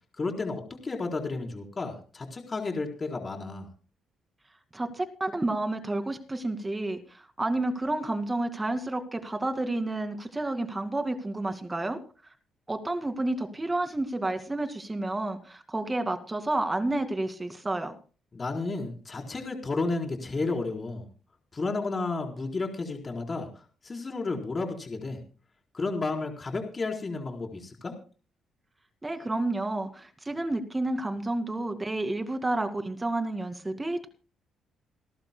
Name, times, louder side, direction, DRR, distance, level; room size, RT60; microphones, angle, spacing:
voice 1, 0.2-3.7 18.3-21.1 21.5-23.5 23.8-25.2 25.7-27.9, left 3 dB, 30° left, 2 dB, 4.3 m, -32 dB
voice 2, 4.7-12.0 12.7-17.9 29.0-34.1, right 2 dB, 15° right, 8 dB, 2.3 m, -30 dB
28.5 x 12.0 x 2.3 m, 0.36 s
cardioid pair, 90°, 0 cm